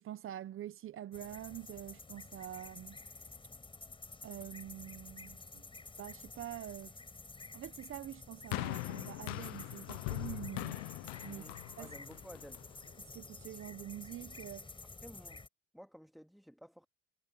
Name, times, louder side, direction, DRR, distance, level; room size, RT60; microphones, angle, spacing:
voice 1, 0.0-3.0 4.2-5.7 6.0-7.0 7.5-10.8 11.2-11.4 11.8-11.9 13.0-14.7, right 12 dB, 45° right, 1.1 m, -46 dB
sound 1, 1.1-15.5, left 3 dB, 15° left, 5.6 m, -51 dB
sound 2, 8.5-12.9 13.7-13.8, left 26 dB, 75° left, 0.8 m, -41 dB
voice 2, 11.3-12.6 15.0-15.4 15.7-16.9, equal, ahead, 2.1 m, -54 dB
hypercardioid pair, 80°, 30 cm